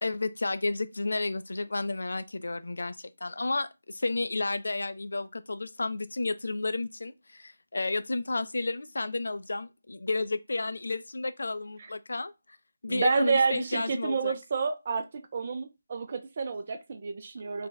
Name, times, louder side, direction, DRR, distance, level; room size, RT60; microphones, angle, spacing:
voice 1, 0.0-12.3 12.8-14.4 17.6-17.7, left 3 dB, 75° left, 0.3 m, -32 dB
voice 2, 12.9-15.0 15.3-17.7, right 5 dB, 40° right, 0.3 m, -29 dB
3.3 x 2.1 x 2.2 m
figure-of-eight pair, 165°, 0 cm